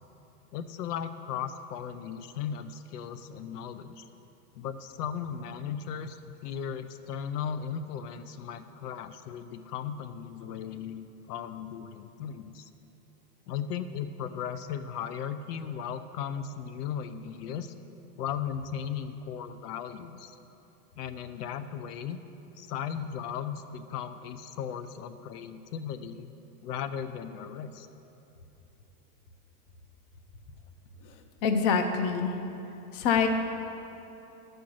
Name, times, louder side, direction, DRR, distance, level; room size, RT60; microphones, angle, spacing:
voice 1, 0.5-4.0 4.5-12.7 13.5-17.7 18.2-20.3 21.0-22.2 22.6-26.3 26.6-27.9, left 8 dB, 85° left, 10 dB, 0.6 m, -36 dB
voice 2, 31.4-32.3 32.9-33.3, left 6 dB, 35° left, 6 dB, 0.6 m, -25 dB
12.0 x 4.5 x 6.3 m, 2.9 s
supercardioid pair, 160°, 46 cm